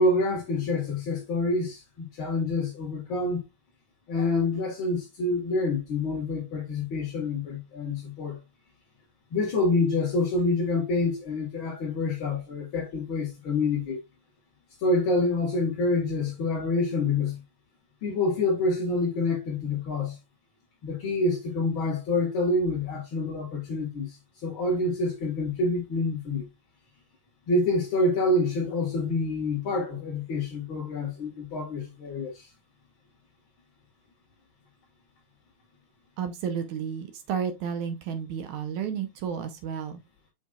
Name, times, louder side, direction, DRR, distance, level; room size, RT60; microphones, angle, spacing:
voice 1, 0.0-3.4 4.1-8.4 9.3-14.0 14.8-17.4 18.0-20.2 20.8-26.4 27.5-32.5, left 2 dB, 45° left, 2.1 m, -27 dB
voice 2, 36.2-40.0, right 7 dB, 75° right, 1.9 m, -32 dB
7.7 x 5.6 x 2.4 m
omnidirectional pair, 4.1 m